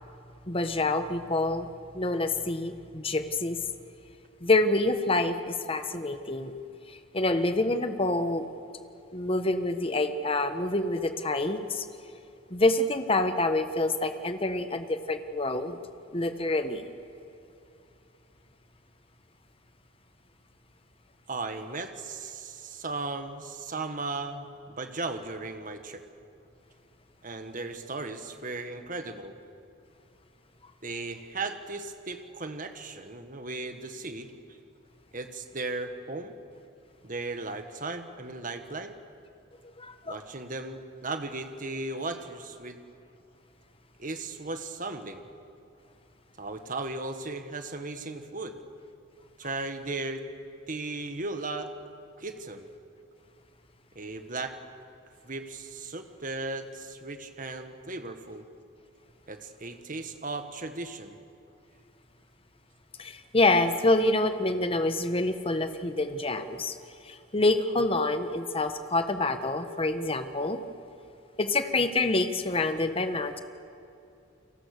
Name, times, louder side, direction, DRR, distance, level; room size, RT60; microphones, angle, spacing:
voice 1, 0.5-1.7 1.9-3.6 4.4-6.5 7.1-8.5 9.1-11.8 12.5-15.8 16.1-16.9 39.8-40.2 63.0-66.7 67.1-70.6 71.4-73.4, left 2 dB, 30° left, 9 dB, 1.3 m, -27 dB
voice 2, 21.3-26.0 27.2-29.4 30.8-34.3 35.1-36.3 37.0-38.9 40.0-42.8 44.0-45.3 46.4-48.6 49.4-50.2 50.7-51.7 52.2-52.7 53.9-54.5 55.2-58.4 59.3-61.2, right 3 dB, 40° right, 7 dB, 1.6 m, -36 dB
29.5 x 23.0 x 6.7 m, 2.6 s
head